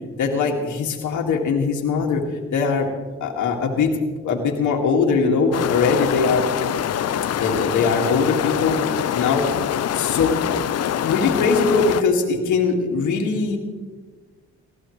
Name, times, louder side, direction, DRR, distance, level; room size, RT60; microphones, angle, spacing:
voice 1, 0.2-2.2 2.5-2.9 3.2-3.9 4.2-6.5 7.4-8.8 9.1-9.5 9.9-10.4 11.0-13.6, left 5 dB, 75° left, 0 dB, 2.1 m, -21 dB
sound 1, 5.5-12.0, left 10 dB, 55° left, 0.7 m, -24 dB
19.0 x 14.5 x 3.2 m, 1.4 s
cardioid pair, 90°, 30 cm